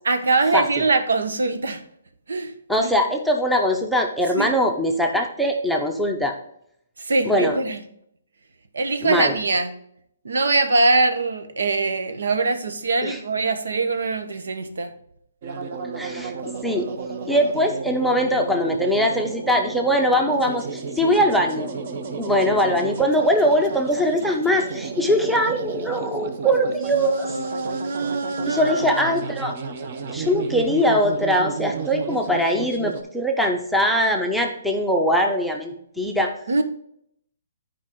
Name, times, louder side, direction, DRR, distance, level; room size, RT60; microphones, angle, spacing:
voice 1, 0.0-1.8 2.3-2.5 2.8-2.9 4.4-4.5 7.0-7.8 8.7-9.8 10.2-14.9 26.7-29.0 36.5-36.6, right 3 dB, 85° right, 9 dB, 1.1 m, -23 dB
voice 2, 2.7-6.4 7.2-7.6 9.0-9.3 13.0-13.2 15.9-16.3 16.6-16.9 17.3-21.7 22.2-27.3 28.5-29.5 30.1-36.3, equal, ahead, 2 dB, 0.6 m, -21 dB
sound 1, 15.4-33.0, right 5 dB, 40° right, 0.8 m, -32 dB
10.5 x 4.9 x 3.8 m, 0.71 s
hypercardioid pair, 165°, 0 cm